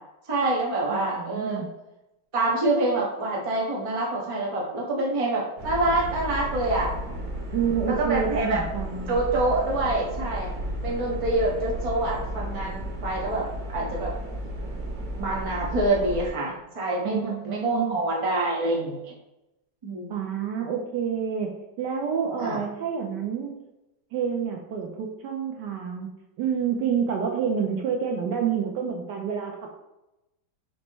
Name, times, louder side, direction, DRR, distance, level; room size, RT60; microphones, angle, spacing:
voice 1, 0.3-1.6 2.3-6.9 7.9-8.6 9.1-10.5 10.8-14.1 15.1-19.1 19.8-20.1 22.4-22.6, right 2 dB, 25° right, -4 dB, 0.7 m, -26 dB
voice 2, 0.9-1.7 7.5-9.1 17.0-18.0 20.1-23.5 24.1-26.1 26.4-29.7, right 7 dB, 70° right, 1 dB, 1.1 m, -28 dB
sound 1, 5.6-16.3, right 1 dB, 55° right, 1.5 m, -33 dB
5.2 x 2.1 x 4.5 m, 0.93 s
omnidirectional pair, 2.1 m